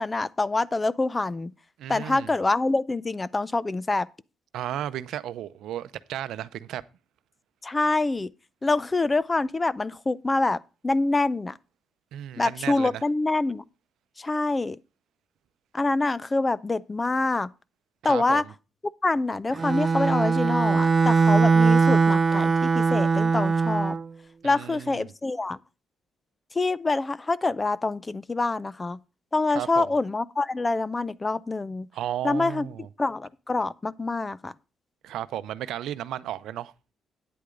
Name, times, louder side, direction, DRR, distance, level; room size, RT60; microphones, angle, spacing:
voice 1, 0.0-1.5 1.9-4.1 7.6-8.3 8.6-10.6 10.8-11.6 12.4-13.6 14.2-14.8 15.7-17.5 18.0-18.4 19.0-24.0 24.4-25.6 26.5-29.0 29.3-31.9 32.2-32.7 33.0-34.5, left 3 dB, 25° left, 0.5 m, -26 dB
voice 2, 1.8-2.3 4.5-6.8 12.1-13.0 18.0-18.5 24.4-25.1 29.5-30.0 31.9-32.9 35.0-36.7, right 11 dB, 80° right, 0.6 m, -34 dB
Bowed string instrument, 19.5-24.0, right 4 dB, 35° right, 0.6 m, -21 dB
9.5 x 8.3 x 3.8 m
cardioid pair, 90°, 0 cm